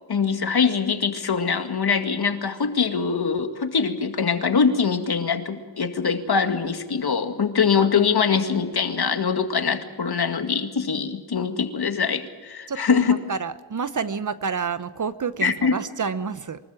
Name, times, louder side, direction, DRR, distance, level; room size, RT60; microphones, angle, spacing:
voice 1, 0.1-13.2 15.4-15.7, left 6 dB, 50° left, 7 dB, 2.1 m, -23 dB
voice 2, 12.7-16.6, right 5 dB, 40° right, 14 dB, 0.9 m, -29 dB
24.5 x 13.5 x 8.9 m, 1.4 s
cardioid pair, 65°, 48 cm